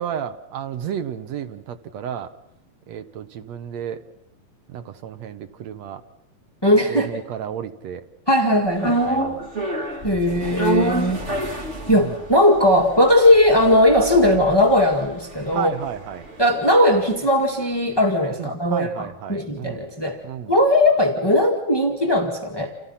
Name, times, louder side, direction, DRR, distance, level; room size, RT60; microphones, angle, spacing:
voice 1, 0.0-2.3 2.9-4.0 4.7-6.0 6.9-8.0 9.1-9.5 10.8-11.2 11.9-12.2 15.5-16.3 18.3-19.9 20.2-20.5, right 9 dB, 65° right, 8 dB, 1.9 m, -32 dB
voice 2, 6.6-7.1 8.3-9.0 10.0-11.2 11.9-15.7 16.4-20.2 20.5-22.7, left 1 dB, 20° left, 0 dB, 0.7 m, -18 dB
sound 1, 8.8-17.1 17.4-17.5, right 2 dB, 20° right, 2.3 m, -28 dB
29.0 x 28.5 x 5.8 m, 0.80 s
omnidirectional pair, 4.4 m